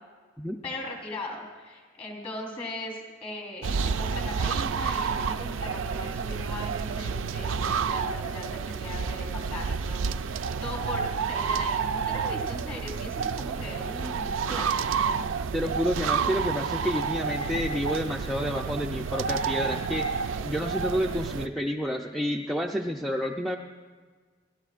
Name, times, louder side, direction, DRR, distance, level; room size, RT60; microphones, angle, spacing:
voice 1, 0.6-15.2, left 1 dB, 30° left, 1 dB, 3.9 m, -39 dB
sound 1, 3.6-21.5, right 5 dB, 90° right, 0.4 m, -30 dB
voice 2, 15.5-20.1 20.4-23.6, equal, ahead, 0 dB, 0.5 m, -29 dB
30.0 x 12.5 x 2.5 m, 1.5 s
head